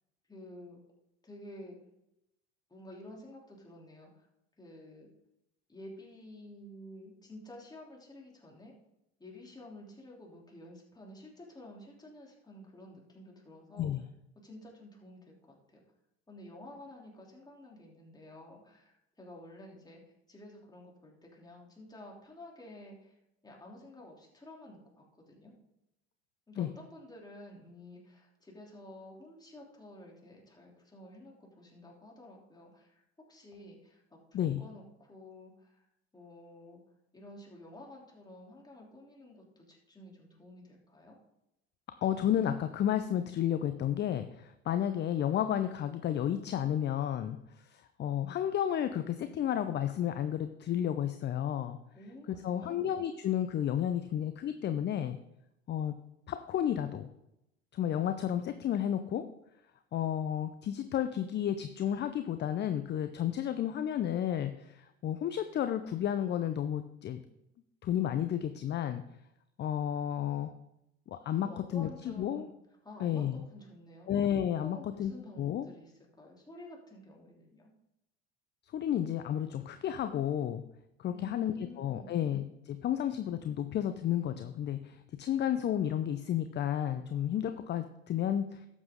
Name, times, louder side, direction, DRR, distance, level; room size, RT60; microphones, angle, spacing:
voice 1, 0.3-0.8 1.2-1.8 2.7-4.3 4.6-5.1 5.7-8.7 9.2-13.9 14.3-15.8 16.3-20.0 20.3-23.1 23.4-25.5 26.5-35.8 36.1-36.8 37.1-41.2 51.9-52.8 71.3-72.5 72.8-74.1 74.6-77.7 81.1-82.2, left 1 dB, 10° left, -2 dB, 3.2 m, -51 dB
voice 2, 42.0-47.4 47.7-51.8 52.3-55.2 55.7-56.0 56.3-57.1 57.7-59.3 59.9-67.2 67.8-69.0 69.6-70.5 71.1-72.5 73.0-73.4 74.1-75.7 78.7-80.6 81.0-88.7, left 10 dB, 30° left, 10 dB, 0.7 m, -32 dB
12.0 x 8.4 x 3.7 m, 0.86 s
hypercardioid pair, 80°, 33 cm